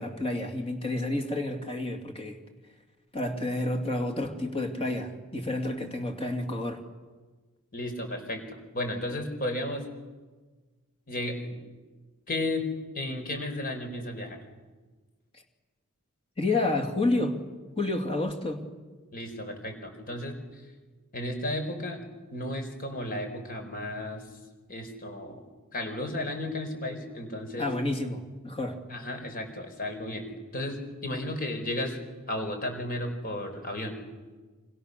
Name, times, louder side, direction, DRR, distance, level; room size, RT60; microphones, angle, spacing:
voice 1, 0.0-2.4 3.1-6.8 16.4-17.4 17.8-18.6 27.6-28.8, left 2 dB, 25° left, 4 dB, 2.7 m, -30 dB
voice 2, 7.7-9.9 11.1-11.6 12.3-12.7 12.9-14.4 19.1-20.4 21.1-22.0 22.3-24.2 24.7-25.4 25.7-27.7 28.9-30.3 30.5-32.0 32.3-34.0, left 1 dB, 40° left, 5 dB, 4.7 m, -33 dB
28.5 x 26.0 x 6.9 m, 1.3 s
head